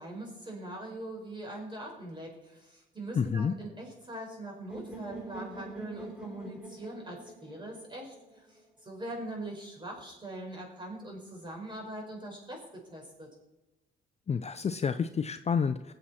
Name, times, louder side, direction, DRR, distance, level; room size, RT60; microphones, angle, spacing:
voice 1, 0.0-12.6 12.9-13.3, right 1 dB, 25° right, 0 dB, 4.9 m, -42 dB
voice 2, 3.2-3.5 14.3-15.9, left 6 dB, 35° left, 10 dB, 0.5 m, -29 dB
sound 1, 4.7-8.6, right 2 dB, 5° right, 3.0 m, -45 dB
20.5 x 7.8 x 4.3 m, 0.96 s
cardioid pair, 90°, 20 cm